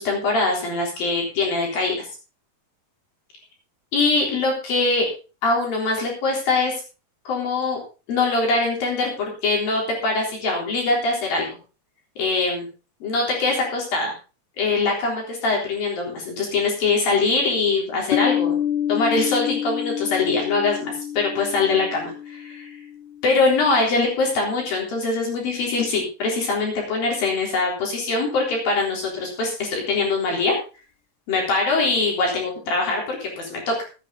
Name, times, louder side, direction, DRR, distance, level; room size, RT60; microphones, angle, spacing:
voice 1, 0.0-2.1 3.9-5.1 5.4-6.8 7.3-7.8 8.1-11.5 12.2-12.7 13.0-14.1 14.6-18.6 18.9-22.8 23.2-30.6 31.3-33.8, left 3 dB, 65° left, -1 dB, 5.4 m, -23 dB
Piano, 18.1-23.5, left 10 dB, 85° left, 2.9 m, -27 dB
16.0 x 9.9 x 3.9 m, 0.33 s
omnidirectional pair, 4.6 m